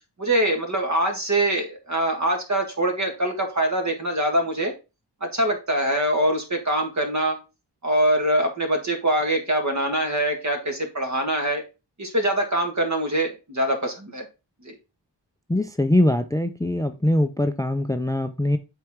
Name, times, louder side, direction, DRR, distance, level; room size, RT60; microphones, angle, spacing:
voice 1, 0.2-4.7 5.2-7.4 7.8-11.6 12.0-14.2 14.6-14.7, right 1 dB, 40° right, 3 dB, 1.8 m, -23 dB
voice 2, 15.5-18.6, left 1 dB, 10° left, 9 dB, 0.4 m, -22 dB
7.4 x 4.6 x 3.6 m, 0.28 s
wide cardioid pair, 85°, 44 cm